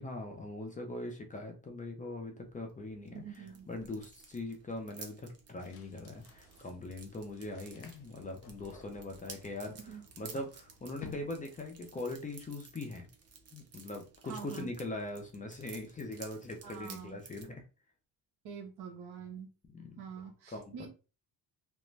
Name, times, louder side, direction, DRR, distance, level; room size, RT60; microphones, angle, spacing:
voice 1, 0.0-13.1 13.5-17.6 19.7-19.9 20.5-20.9, left 2 dB, 20° left, 3 dB, 0.5 m, -41 dB
sound 1, 2.4-17.4, right 5 dB, 40° right, 0.6 m, -55 dB
voice 2, 3.1-3.7 9.9-10.0 14.2-14.7 16.6-17.2 18.4-19.5 20.0-20.9, right 7 dB, 75° right, 5 dB, 0.9 m, -45 dB
sound 2, 5.6-11.9, left 4 dB, 70° left, 0.7 m, -55 dB
2.4 x 2.1 x 3.1 m, 0.32 s
cardioid pair, 120°, 40 cm